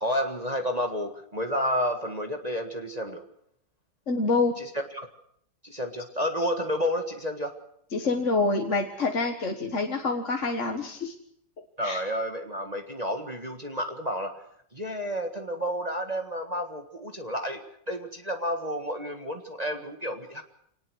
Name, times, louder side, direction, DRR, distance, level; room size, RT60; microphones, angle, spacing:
voice 1, 0.0-3.2 4.6-5.1 5.6-7.5 11.8-14.4 14.7-17.6 17.9-20.4, equal, 20° right, 4 dB, 1.7 m, -30 dB
voice 2, 4.1-4.5 7.9-11.1 11.8-12.0, left 3 dB, 45° left, 3 dB, 1.9 m, -26 dB
25.0 x 19.5 x 6.3 m, 0.70 s
omnidirectional pair, 1.9 m